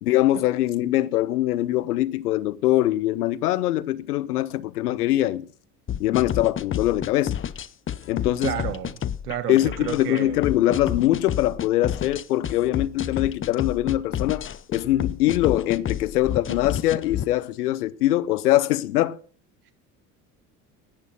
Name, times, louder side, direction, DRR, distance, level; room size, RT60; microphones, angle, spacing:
voice 1, 0.0-5.5 6.0-7.4 8.1-8.5 9.5-19.2, left 14 dB, 80° left, 0.8 m, -23 dB
sound 1, 5.9-17.3, left 9 dB, 30° left, 0.8 m, -30 dB
voice 2, 8.4-10.4 19.7-19.8, right 10 dB, 85° right, 1.4 m, -31 dB
10.5 x 9.9 x 5.7 m
hypercardioid pair, 65°, 45 cm